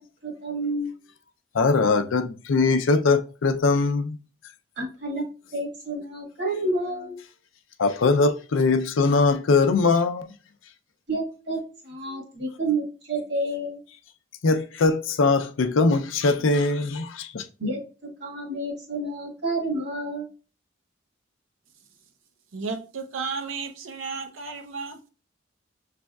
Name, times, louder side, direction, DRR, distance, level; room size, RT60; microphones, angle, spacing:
voice 1, 0.2-0.9 4.8-5.2 5.5-7.2 11.1-11.6 11.8-13.8 17.6-17.8 18.2-20.3, right 2 dB, 60° right, 1.5 m, -29 dB
voice 2, 1.5-4.2 7.8-10.3 14.4-17.4, left 3 dB, 80° left, 0.5 m, -21 dB
voice 3, 22.5-25.0, right 4 dB, 85° right, 0.7 m, -33 dB
6.2 x 3.3 x 2.3 m
head